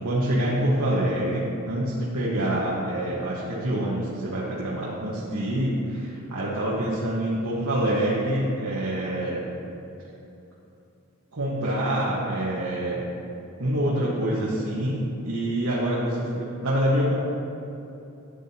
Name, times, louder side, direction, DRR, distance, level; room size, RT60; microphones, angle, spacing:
voice 1, 0.0-9.4 11.3-13.0 13.6-17.2, right 1 dB, 85° right, -7 dB, 1.4 m, -26 dB
13.0 x 8.7 x 2.9 m, 2.9 s
head